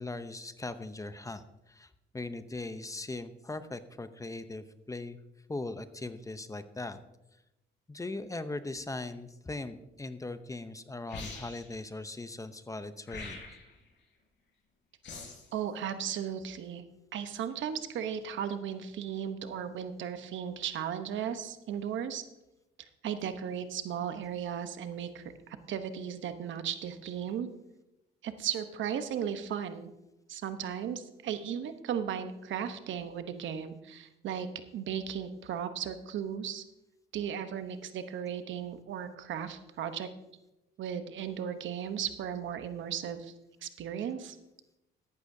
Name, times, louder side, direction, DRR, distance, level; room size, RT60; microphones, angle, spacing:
voice 1, 0.0-5.2 5.5-7.0 7.9-13.4, left 2 dB, 15° left, 11 dB, 0.7 m, -39 dB
sound 1, 11.1-11.8 13.1-13.8 15.0-15.5, left 3 dB, 65° left, 4.6 m, -43 dB
voice 2, 15.5-16.8 17.1-22.2 22.8-27.5 28.2-29.9 30.3-34.5 34.7-36.6 37.1-40.1 40.8-43.3 43.6-44.4, right 8 dB, 75° right, 10 dB, 0.9 m, -36 dB
13.5 x 11.5 x 2.7 m, 0.91 s
cardioid pair, 90°, 20 cm